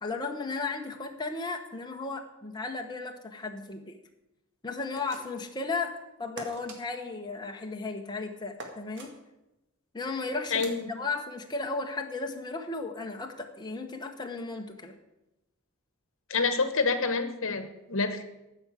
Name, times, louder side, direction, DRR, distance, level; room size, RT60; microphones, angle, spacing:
voice 1, 0.0-4.0 4.6-5.9 6.2-9.1 9.9-15.0, left 3 dB, 20° left, 2 dB, 0.9 m, -35 dB
sound 1, 4.9-5.5 6.4-6.8 8.6-9.1 10.4-10.8, right 2 dB, 55° right, 2.0 m, -44 dB
voice 2, 10.5-10.9 16.3-18.2, left 4 dB, 60° left, 10 dB, 1.2 m, -27 dB
14.0 x 5.8 x 8.1 m, 0.96 s
head